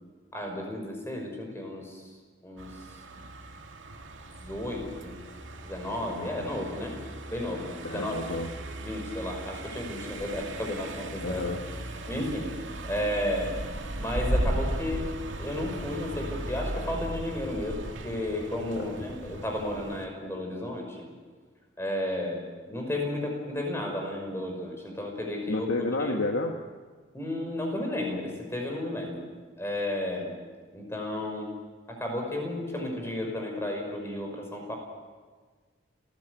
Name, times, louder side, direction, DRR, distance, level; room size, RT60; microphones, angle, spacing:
voice 1, 0.3-2.0 2.4-2.7 4.4-5.2 5.6-6.9 7.3-8.1 8.8-11.4 12.1-12.5 12.9-13.6 14.0-15.1 15.4-17.8 18.0-21.1 21.8-22.4 22.7-25.7 26.0-26.2 27.1-29.2 29.6-30.3 30.7-31.5 31.9-34.7, left 1 dB, 15° left, 1 dB, 5.5 m, -33 dB
Car passing by, 2.6-20.1, right 1 dB, 85° right, 2.3 m, -36 dB
voice 2, 6.1-6.5 7.8-8.5 11.2-11.6 18.8-18.9 25.5-26.5, left 2 dB, 90° left, 3 dB, 1.6 m, -30 dB
30.0 x 15.0 x 8.2 m, 1.5 s
head